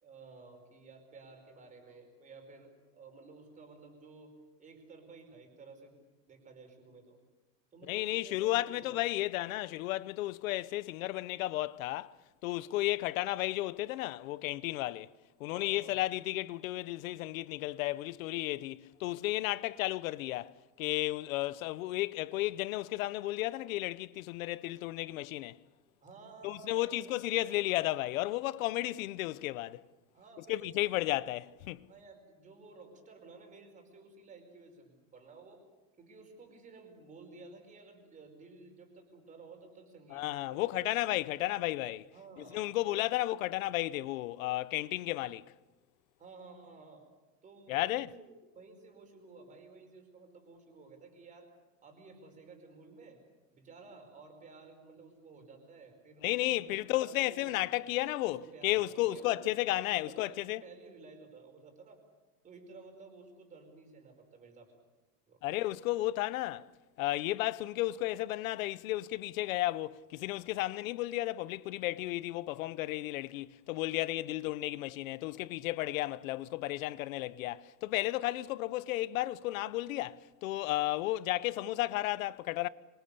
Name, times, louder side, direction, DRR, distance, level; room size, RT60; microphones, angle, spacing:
voice 1, 0.0-6.0 6.3-7.2 7.7-9.1 15.5-16.0 26.0-27.1 27.4-27.5 28.6-28.7 30.1-31.1 31.9-35.7 36.0-40.7 42.1-43.1 46.2-47.1 47.4-51.5 51.8-53.2 53.5-56.3 56.5-57.9 58.3-62.0 62.4-64.7 65.3-65.4, right 3 dB, 20° right, 5.0 m, -54 dB
voice 2, 7.9-12.1 12.4-15.1 15.4-25.6 26.4-29.8 30.5-31.9 40.1-42.0 42.5-45.4 47.7-48.1 56.2-60.6 65.4-66.7 67.0-82.7, left 17 dB, 75° left, 1.0 m, -33 dB
26.0 x 25.5 x 6.9 m
supercardioid pair, 180°, 41 cm